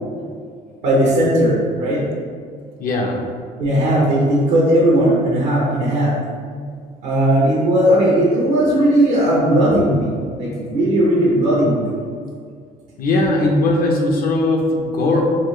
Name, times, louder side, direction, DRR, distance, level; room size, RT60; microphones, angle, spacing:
voice 1, 0.8-2.1 3.6-6.1 7.0-11.8, right 1 dB, 90° right, -6 dB, 0.9 m, -17 dB
voice 2, 2.8-3.2 13.0-15.2, left 2 dB, 60° left, 1 dB, 0.7 m, -18 dB
4.2 x 2.4 x 3.1 m, 2.1 s
cardioid pair, 110°, 17 cm